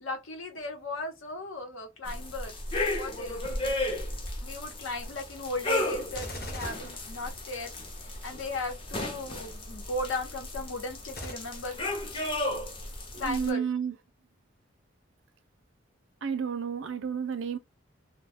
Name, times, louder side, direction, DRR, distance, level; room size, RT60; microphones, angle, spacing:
voice 1, 0.0-2.6 2.9-3.8 4.4-11.8 13.2-13.6, left 2 dB, 85° left, 1.0 m, -37 dB
sound 1, 2.1-13.5, left 1 dB, 25° left, 0.6 m, -34 dB
Gunshot gunfire, 6.1-7.9 11.1-11.3, left 1 dB, 50° left, 0.9 m, -40 dB
voice 2, 13.1-13.9 16.2-17.6, right 7 dB, 75° right, 0.5 m, -31 dB
2.3 x 2.2 x 3.4 m
head